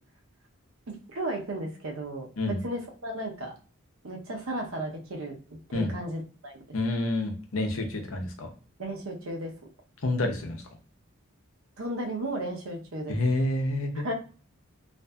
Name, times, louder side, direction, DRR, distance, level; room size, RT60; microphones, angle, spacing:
voice 1, 0.9-3.5 4.0-5.4 5.7-6.6 8.8-9.5 11.8-13.2 13.9-14.1, right 1 dB, 75° right, 1 dB, 0.8 m, -34 dB
voice 2, 6.7-8.5 10.0-10.6 13.1-14.1, left 2 dB, 75° left, 3 dB, 0.7 m, -28 dB
2.6 x 2.5 x 2.3 m, 0.38 s
head